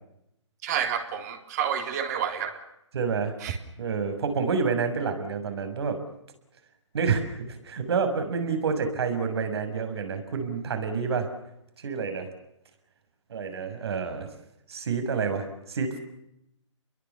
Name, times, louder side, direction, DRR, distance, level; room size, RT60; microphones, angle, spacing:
voice 1, 0.6-2.6 3.4-3.6, right 8 dB, 35° right, 6 dB, 3.5 m, -29 dB
voice 2, 2.9-3.3 3.8-6.0 6.9-11.3 11.8-12.3 13.3-14.3 14.7-16.0, right 5 dB, 55° right, 7 dB, 6.2 m, -28 dB
29.5 x 22.0 x 7.1 m, 0.81 s
hypercardioid pair, 150°, 16 cm